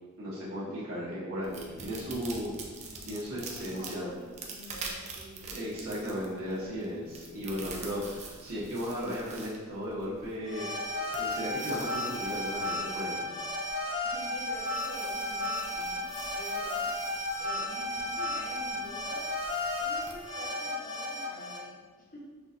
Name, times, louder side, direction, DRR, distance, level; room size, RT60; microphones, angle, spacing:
voice 1, 0.2-2.5 3.1-4.1 5.5-10.7 11.2-13.3, equal, 85° right, -8 dB, 1.5 m, -36 dB
sound 1, 1.4-20.3, right 4 dB, 30° right, 0.5 m, -47 dB
voice 2, 2.8-5.5 14.0-16.1 16.3-16.9 17.4-19.3 19.8-22.2, equal, 40° left, -5 dB, 1.1 m, -47 dB
sound 2, 10.4-21.6, left 1 dB, 70° left, 0.8 m, -34 dB
5.8 x 2.7 x 2.5 m, 1.4 s
head